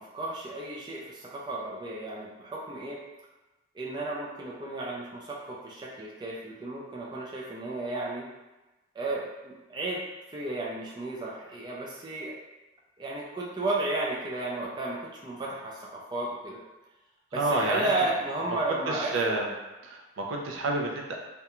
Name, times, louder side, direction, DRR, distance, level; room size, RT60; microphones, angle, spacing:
voice 1, 0.0-3.0 3.7-8.3 8.9-10.0 10.3-12.3 13.0-16.6 17.3-19.5, right 2 dB, 20° right, -4 dB, 0.3 m, -33 dB
voice 2, 17.3-17.9 18.7-19.5 19.8-21.2, right 2 dB, 85° right, 0 dB, 0.4 m, -29 dB
2.4 x 2.1 x 2.9 m, 1.1 s
head